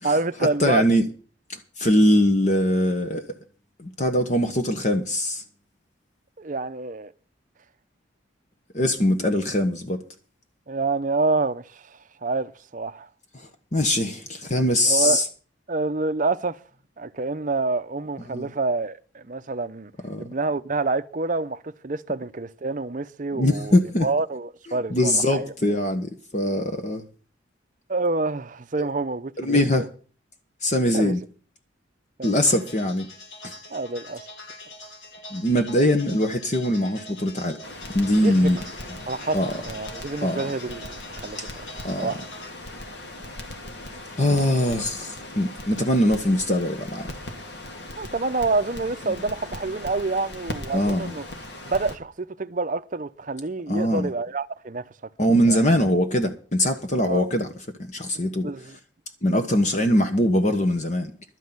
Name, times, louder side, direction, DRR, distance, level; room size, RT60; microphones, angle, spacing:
voice 1, 0.0-0.9 6.4-7.1 10.7-13.1 14.9-15.3 15.7-16.6 17.0-19.9 20.2-25.4 27.9-29.6 30.9-31.1 32.2-32.4 33.7-34.3 38.2-38.5 39.1-41.4 42.0-42.2 48.0-51.3 51.7-54.9 55.5-55.6 57.1-57.3 58.4-58.8, right 3 dB, 40° right, 0.6 m, -27 dB
voice 2, 0.6-1.0 1.5-3.3 3.8-5.4 8.7-10.0 13.3-15.2 18.3-18.5 20.0-20.3 23.3-24.1 24.7-27.0 28.8-28.9 29.4-29.8 30.6-31.2 32.2-33.1 33.4-33.5 35.3-37.6 37.9-38.6 39.3-39.5 40.2-40.4 41.4-41.5 41.8-42.1 44.2-47.1 50.7-51.1 53.7-54.1 55.2-57.5 57.9-58.5 59.2-61.1, left 1 dB, 35° left, 1.1 m, -22 dB
sound 1, 32.2-42.5, left 1 dB, 85° left, 4.7 m, -43 dB
Crackle, 37.6-52.0, left 1 dB, 55° left, 2.0 m, -39 dB
12.0 x 6.5 x 9.5 m
head